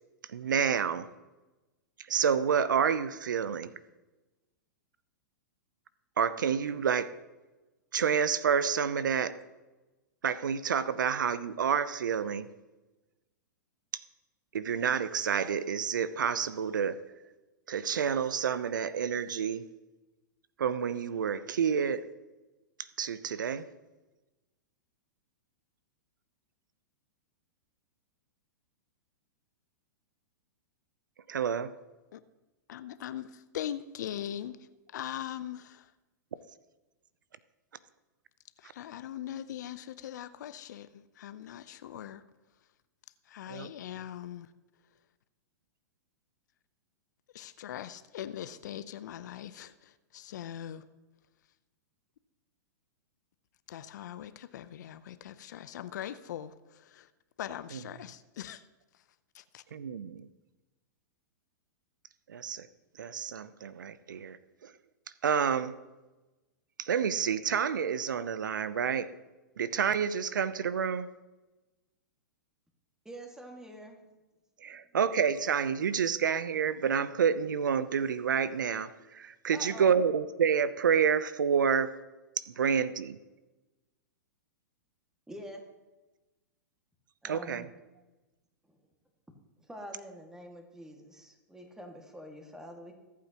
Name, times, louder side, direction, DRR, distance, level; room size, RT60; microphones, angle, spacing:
voice 1, 0.3-1.1 2.1-3.7 6.2-7.1 7.9-9.3 10.2-12.5 14.5-17.0 17.7-19.6 20.6-22.0 23.0-23.7 31.3-31.7 43.5-43.7 57.7-57.8 59.7-60.3 62.3-62.7 63.0-64.4 64.6-64.7 65.2-65.8 66.8-69.1 69.6-71.1 74.6-81.9 82.4-83.2 87.2-87.7, right 7 dB, 80° right, 0.6 m, -29 dB
voice 2, 32.7-35.9 38.6-42.2 43.3-44.5 47.3-50.8 53.7-57.1 57.4-58.6 59.3-59.6, left 11 dB, 65° left, 0.7 m, -41 dB
voice 3, 73.1-74.0 79.5-80.0 85.3-85.6 87.2-87.7 88.7-88.8 89.6-92.9, equal, 5° right, 2.0 m, -46 dB
23.5 x 8.5 x 3.0 m
hypercardioid pair, 115°, 10 cm